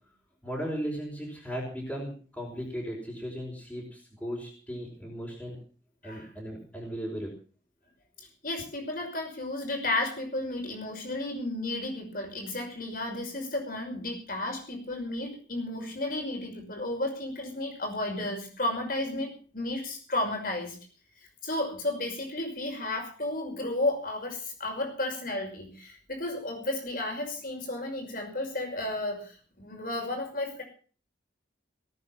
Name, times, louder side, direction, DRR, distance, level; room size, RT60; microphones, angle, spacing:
voice 1, 0.4-5.6 6.0-7.3, equal, 10° left, -5 dB, 4.7 m, -36 dB
voice 2, 8.4-20.8 21.4-30.6, left 2 dB, 50° left, 3 dB, 5.8 m, -33 dB
18.5 x 9.2 x 7.4 m, 0.41 s
head